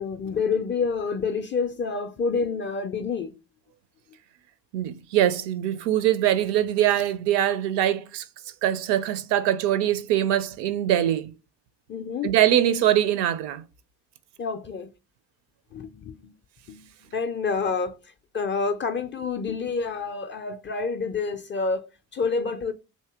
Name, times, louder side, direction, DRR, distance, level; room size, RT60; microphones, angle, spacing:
voice 1, 0.0-3.3 11.9-12.3 14.4-14.9 15.7-16.3 16.7-16.8 17.1-18.0 18.3-21.9 22.1-22.7, left 5 dB, 25° left, 0.4 m, -28 dB
voice 2, 4.7-8.2 8.6-11.3 12.2-13.6, right 11 dB, 60° right, 0.5 m, -23 dB
2.9 x 2.7 x 3.4 m
figure-of-eight pair, 40°, 48 cm